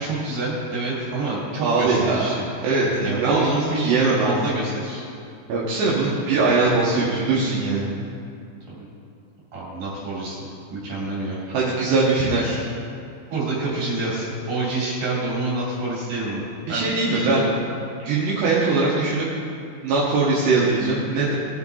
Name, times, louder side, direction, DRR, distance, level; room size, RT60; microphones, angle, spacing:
voice 1, 0.0-2.5 3.0-5.0 8.7-8.9 9.5-11.4 13.3-16.4 16.7-17.4, right 2 dB, 45° right, -7 dB, 4.2 m, -27 dB
voice 2, 1.6-2.2 2.6-3.5 3.8-4.5 5.5-7.9 11.5-12.6 16.7-17.5 18.0-19.3 19.8-21.3, right 3 dB, 70° right, -6 dB, 3.1 m, -21 dB
20.0 x 6.9 x 4.0 m, 2.4 s
omnidirectional pair, 5.6 m